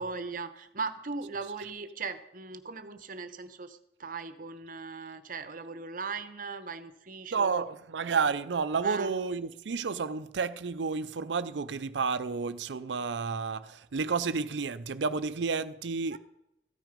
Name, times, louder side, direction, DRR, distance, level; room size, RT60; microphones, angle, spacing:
voice 1, 0.0-7.6 8.8-9.1 16.1-16.2, right 4 dB, 50° right, 0.9 m, -38 dB
voice 2, 7.3-16.2, right 5 dB, 85° right, 0.5 m, -31 dB
14.5 x 9.1 x 5.2 m
head